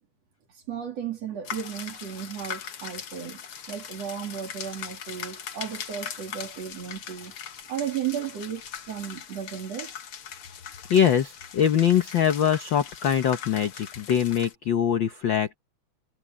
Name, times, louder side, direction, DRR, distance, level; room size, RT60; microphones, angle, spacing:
voice 1, 0.7-3.4 3.7-7.4 7.7-9.9, right 9 dB, 60° right, 3.6 m, -34 dB
sound 1, 1.4-14.5, left 8 dB, 50° left, 2.1 m, -40 dB
voice 2, 10.9-15.6, left 9 dB, 70° left, 1.1 m, -23 dB
omnidirectional pair, 3.4 m